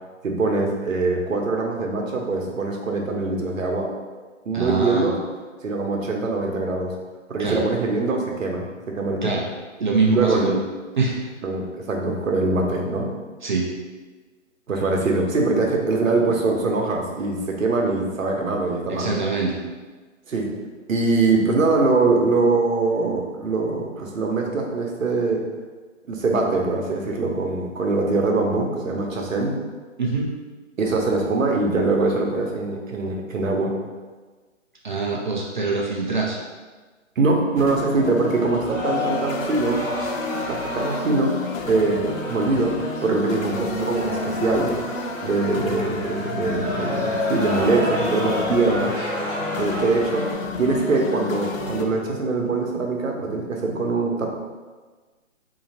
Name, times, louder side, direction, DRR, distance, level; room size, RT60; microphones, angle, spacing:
voice 1, 0.2-3.9 4.4-5.2 5.6-6.9 7.3-9.3 10.0-10.5 11.4-13.1 14.7-19.1 20.3-20.5 20.9-25.4 26.1-29.6 30.8-33.7 37.2-39.8 40.5-44.8 45.2-48.9 49.5-50.3 50.6-54.3, right 3 dB, 75° right, 1 dB, 0.9 m, -23 dB
voice 2, 4.5-5.1 7.4-7.6 9.2-9.4 9.8-10.6 11.0-11.1 13.4-13.7 18.9-19.6 30.0-30.3 34.8-36.4, right 3 dB, 40° right, -3 dB, 0.4 m, -23 dB
sound 1, 37.6-51.8, left 3 dB, 75° left, 0.6 m, -32 dB
sound 2, 38.7-50.3, left 1 dB, 15° right, 1.3 m, -30 dB
3.9 x 2.8 x 2.7 m, 1.3 s
figure-of-eight pair, 140°, 40 cm